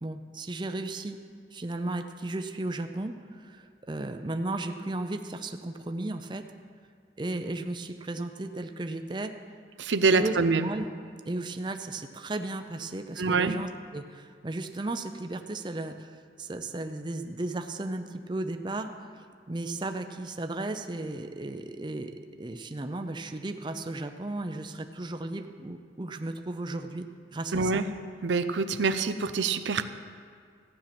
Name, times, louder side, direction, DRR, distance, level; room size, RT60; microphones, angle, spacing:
voice 1, 0.0-1.2 1.5-6.4 7.2-9.3 10.1-10.9 11.3-22.1 22.4-27.1 27.3-27.8, right 2 dB, 25° right, 7 dB, 0.5 m, -35 dB
voice 2, 9.8-10.7 13.2-13.6 27.5-27.8 28.2-29.8, right 4 dB, 90° right, 10 dB, 0.6 m, -25 dB
15.0 x 8.9 x 5.9 m, 2.2 s
head